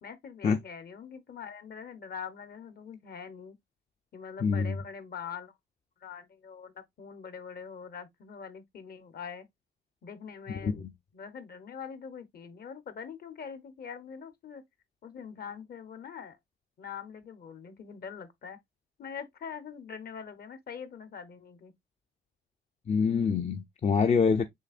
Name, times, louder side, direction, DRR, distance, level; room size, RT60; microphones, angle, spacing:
voice 1, 0.0-3.6 4.1-5.5 6.0-9.5 10.0-10.8 11.1-14.6 15.0-16.4 16.8-18.6 19.0-21.7, left 6 dB, 50° left, 1.0 m, -43 dB
voice 2, 4.4-4.7 10.6-10.9 22.9-24.5, left 5 dB, 35° left, 0.5 m, -25 dB
6.3 x 3.4 x 2.4 m
cardioid pair, 90°, 20 cm